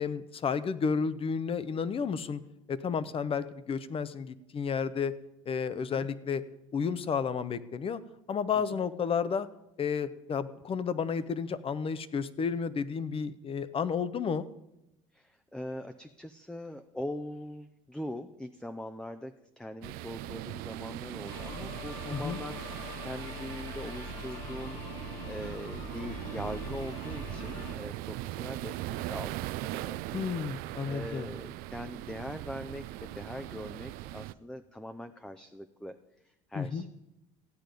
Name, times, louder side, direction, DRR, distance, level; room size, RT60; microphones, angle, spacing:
voice 1, 0.0-2.4 2.7-5.1 5.5-6.4 6.7-8.0 8.3-9.5 9.8-14.5 22.1-22.4 30.1-31.3 36.5-36.8, left 6 dB, 35° left, 15 dB, 0.8 m, -32 dB
voice 2, 15.1-36.9, left 1 dB, 5° left, 8 dB, 0.6 m, -42 dB
sound 1, 19.8-34.3, right 17 dB, 60° right, 0.5 m, -40 dB
sound 2, 21.2-27.7, left 6 dB, 65° left, 1.9 m, -43 dB
sound 3, 22.5-27.6, left 2 dB, 90° left, 5.0 m, -62 dB
15.0 x 9.0 x 5.2 m, 0.89 s
hypercardioid pair, 80°, 17 cm